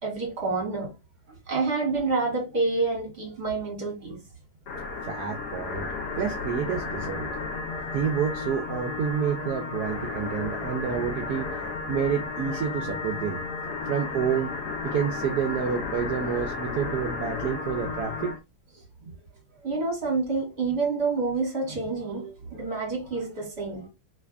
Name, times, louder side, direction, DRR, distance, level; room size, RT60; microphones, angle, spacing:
voice 1, 0.0-0.9 1.5-4.2 19.0-19.1 19.6-23.9, right 3 dB, 40° right, 1.8 m, -28 dB
sound 1, 4.7-18.4, left 4 dB, 80° left, 1.3 m, -33 dB
voice 2, 5.0-5.9 6.2-7.3 7.9-11.5 11.9-13.4 13.8-14.6 14.8-18.3, right 7 dB, 75° right, 1.1 m, -29 dB
3.3 x 3.2 x 2.4 m
omnidirectional pair, 1.7 m